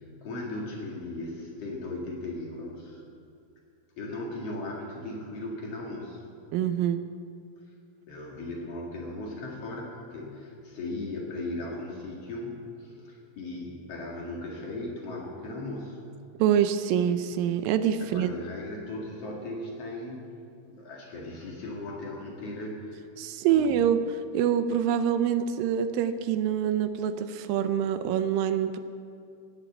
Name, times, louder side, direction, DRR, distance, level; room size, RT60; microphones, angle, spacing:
voice 1, 0.0-3.0 4.0-6.2 8.1-16.0 18.0-20.3 20.7-23.1 23.5-23.8, left 2 dB, 50° left, -1 dB, 2.6 m, -37 dB
voice 2, 6.5-7.0 16.4-18.4 23.2-24.0 24.3-28.8, right 9 dB, 80° right, 10 dB, 2.3 m, -25 dB
18.0 x 8.1 x 8.0 m, 2.5 s
omnidirectional pair, 4.1 m